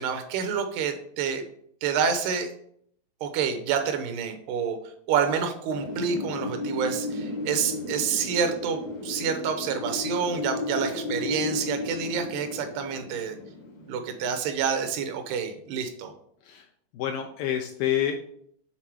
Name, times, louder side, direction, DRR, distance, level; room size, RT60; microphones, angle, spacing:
voice 1, 0.0-1.4 1.8-2.5 3.2-4.8 5.1-13.4 13.9-16.1, right 7 dB, 85° right, 7 dB, 2.9 m, -28 dB
Wind, 5.7-14.4, left 2 dB, 65° left, 1.8 m, -34 dB
voice 2, 16.9-18.2, left 10 dB, 85° left, 5 dB, 2.0 m, -28 dB
7.5 x 4.0 x 4.6 m, 0.67 s
omnidirectional pair, 4.4 m